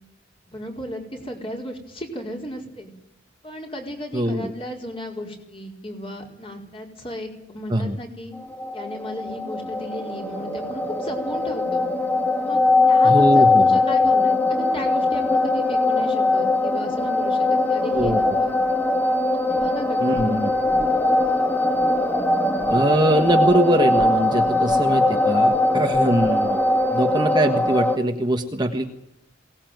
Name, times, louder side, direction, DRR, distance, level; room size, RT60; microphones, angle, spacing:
voice 1, 0.5-2.9 3.4-8.3 8.7-11.8 12.4-18.6 19.3-20.4, left 1 dB, 25° left, 1 dB, 4.8 m, -35 dB
voice 2, 4.1-4.5 7.7-8.0 13.0-13.8 17.9-18.2 20.0-20.5 22.7-26.6 26.9-28.9, right 1 dB, 20° right, 4 dB, 1.4 m, -22 dB
sound 1, 8.4-28.0, left 2 dB, 10° left, 1.8 m, -21 dB
22.5 x 19.0 x 9.3 m, 0.79 s
head